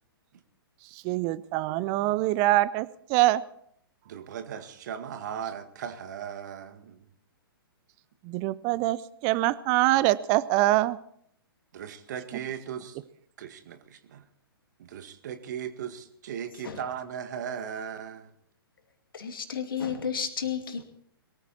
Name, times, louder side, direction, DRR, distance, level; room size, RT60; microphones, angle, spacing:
voice 1, 0.9-3.4 8.2-11.0, right 17 dB, 30° right, 18 dB, 0.6 m, -24 dB
voice 2, 1.7-2.2 4.1-7.1 11.7-13.0 13.4-14.3 14.8-18.3, right 8 dB, 50° right, 9 dB, 1.9 m, -38 dB
voice 3, 19.1-20.8, left 7 dB, 65° left, 6 dB, 2.5 m, -32 dB
22.0 x 14.5 x 4.3 m, 0.68 s
figure-of-eight pair, 120°, 13 cm